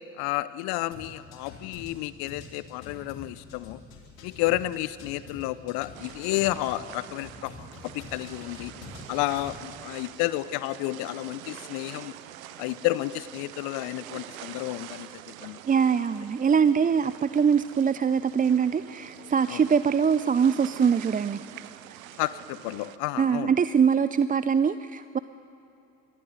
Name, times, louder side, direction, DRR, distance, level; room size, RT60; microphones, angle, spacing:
voice 1, 0.2-3.8 4.2-8.7 9.1-12.1 12.6-15.1 15.4-15.6 19.5-19.6 22.2-23.5, left 17 dB, 65° left, 16 dB, 0.7 m, -31 dB
sound 1, 0.9-6.8 7.2-9.6, left 4 dB, 80° left, 3.5 m, -46 dB
sound 2, 5.9-23.0, right 12 dB, 80° right, 0.8 m, -45 dB
voice 2, 15.7-21.4 23.2-25.2, right 6 dB, 20° right, 14 dB, 0.5 m, -23 dB
23.0 x 15.0 x 9.5 m, 2.8 s
hypercardioid pair, 55°, 40 cm